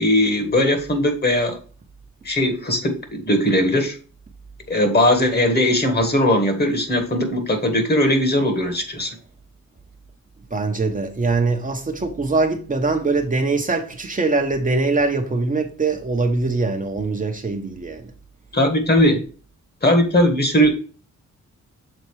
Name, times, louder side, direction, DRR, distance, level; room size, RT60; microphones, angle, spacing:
voice 1, 0.0-1.6 2.2-4.0 4.7-9.1 18.5-19.2 19.8-20.7, left 1 dB, 35° left, 1.5 m, -19 dB
voice 2, 10.5-18.1, right 3 dB, 25° right, 0.9 m, -22 dB
6.9 x 3.9 x 4.7 m
wide cardioid pair, 125°, 30 cm